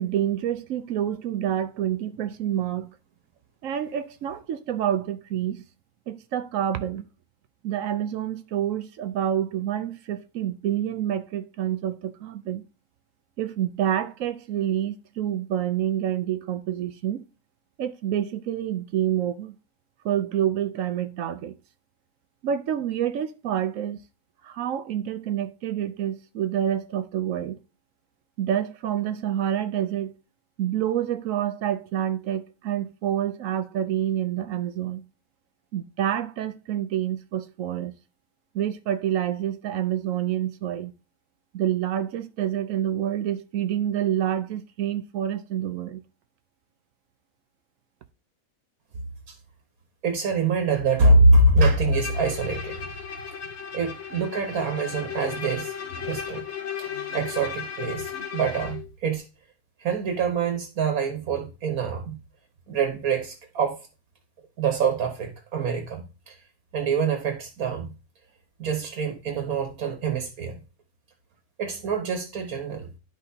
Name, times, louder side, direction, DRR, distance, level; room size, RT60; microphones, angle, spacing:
voice 1, 0.0-2.9 3.6-5.6 6.1-7.0 7.6-12.6 13.4-17.2 17.8-19.6 20.0-21.6 22.4-24.0 24.4-27.6 28.4-30.1 30.6-35.0 35.7-37.9 38.5-40.9 41.5-46.0, right 10 dB, 70° right, 1.0 m, -28 dB
voice 2, 50.0-52.8 53.7-55.7 56.0-56.5 56.8-59.2 59.8-62.2 62.7-63.8 64.6-66.4 66.7-67.9 68.6-70.5 71.6-72.9, right 3 dB, 90° right, 1.6 m, -24 dB
Bowed string instrument, 51.9-58.9, left 7 dB, 55° left, 1.2 m, -35 dB
12.5 x 4.9 x 2.8 m
omnidirectional pair, 1.5 m